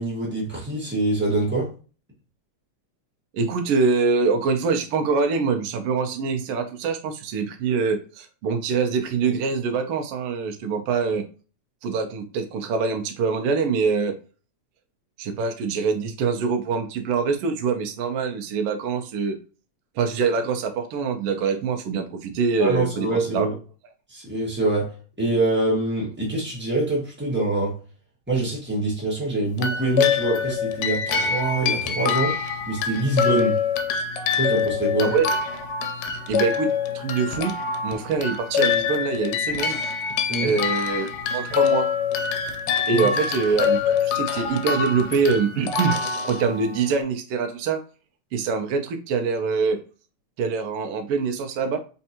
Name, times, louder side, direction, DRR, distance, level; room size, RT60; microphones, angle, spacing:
voice 1, 0.0-1.7 22.6-23.5 24.1-27.8 28.3-32.4 32.7-33.6 34.4-35.1 40.3-40.5 42.9-43.1, right 2 dB, 15° right, 0.4 m, -24 dB
voice 2, 3.3-11.2 11.8-14.1 15.2-19.4 20.0-23.5 35.0-35.3 36.3-36.7 36.9-37.5 37.8-39.8 40.4-41.9 42.9-46.0 46.3-47.8 48.3-49.8 50.4-51.8, right 5 dB, 90° right, 1.2 m, -24 dB
sound 1, 29.6-47.0, left 6 dB, 90° left, 2.1 m, -25 dB
4.4 x 3.4 x 2.8 m
omnidirectional pair, 3.3 m